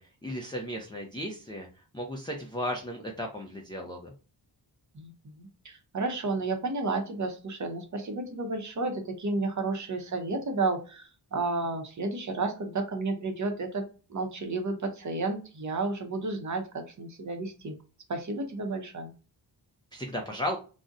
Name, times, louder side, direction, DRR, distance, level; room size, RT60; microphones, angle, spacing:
voice 1, 0.0-4.1 19.9-20.6, equal, 10° left, 0 dB, 0.4 m, -35 dB
voice 2, 4.9-13.8 14.1-17.8 18.1-19.1, right 3 dB, 40° right, 5 dB, 0.7 m, -32 dB
2.6 x 2.1 x 3.6 m, 0.35 s
wide cardioid pair, 140°, 44 cm